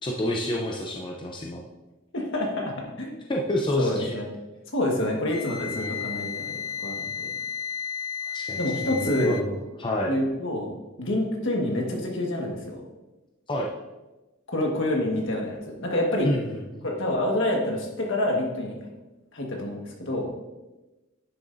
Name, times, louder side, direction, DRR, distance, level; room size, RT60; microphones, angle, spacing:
voice 1, 0.0-1.6 3.3-4.1 5.7-6.1 8.3-10.1 13.5-13.7 16.2-16.9, left 1 dB, 25° left, -1 dB, 0.6 m, -29 dB
voice 2, 2.1-3.2 3.8-4.3 4.7-7.3 8.6-9.4 10.1-12.8 14.5-16.3 16.8-18.8 19.3-20.3, left 1 dB, 60° left, 0 dB, 1.5 m, -27 dB
Wind instrument woodwind instrument, 5.3-9.5, left 7 dB, 90° left, 0.6 m, -33 dB
9.9 x 7.0 x 2.6 m, 1.1 s
head